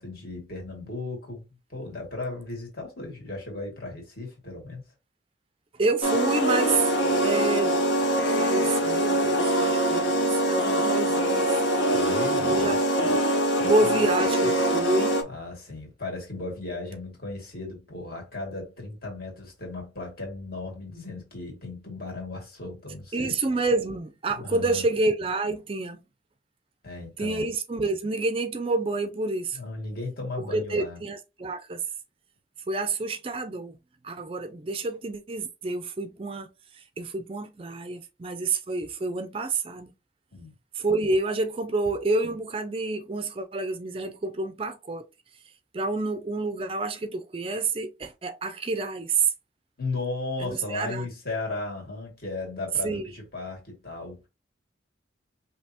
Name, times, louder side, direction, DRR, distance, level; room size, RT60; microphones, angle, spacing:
voice 1, 0.0-1.4 1.7-4.8 11.9-12.8 13.6-14.0 15.2-23.4 24.3-24.9 26.8-27.5 29.5-31.0 40.3-40.5 49.8-54.3, left 2 dB, 55° left, 2.0 m, -36 dB
voice 2, 5.8-6.9 7.2-7.8 8.4-11.6 12.5-13.2 13.6-15.2 23.1-26.0 27.2-29.6 30.4-31.8 32.7-33.8 34.0-36.5 37.0-39.9 40.7-45.1 45.7-49.3 50.4-51.1 52.8-53.1, right 3 dB, 30° right, 0.4 m, -28 dB
sound 1, 6.0-15.2, right 1 dB, 75° left, 1.1 m, -23 dB
5.3 x 2.8 x 2.8 m
head